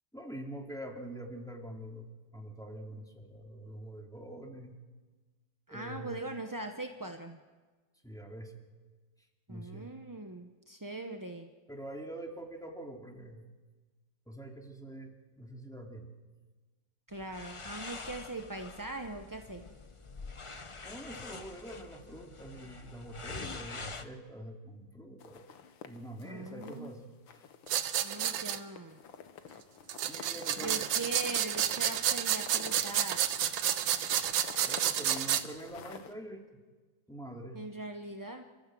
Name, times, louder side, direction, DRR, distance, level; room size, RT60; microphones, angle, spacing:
voice 1, 0.1-4.8 5.7-6.2 8.0-8.6 9.5-9.9 11.7-13.4 14.3-16.1 20.8-25.4 25.8-27.0 27.3-27.4 30.1-30.8 34.6-36.4 37.1-37.6, right 1 dB, ahead, 1 dB, 2.4 m, -45 dB
voice 2, 5.7-7.4 9.5-11.5 17.1-19.6 26.2-26.9 28.0-29.0 30.6-33.2 37.5-38.5, right 2 dB, 25° right, 4 dB, 0.4 m, -41 dB
sound 1, 17.1-24.0, left 4 dB, 40° left, 0.4 m, -45 dB
sound 2, 25.2-26.9 27.3-27.9 28.2-36.1, left 7 dB, 85° left, 2.0 m, -50 dB
sound 3, 27.7-28.6 29.9-35.4, right 10 dB, 90° right, 1.7 m, -30 dB
28.5 x 14.0 x 7.8 m, 1.3 s
omnidirectional pair, 2.1 m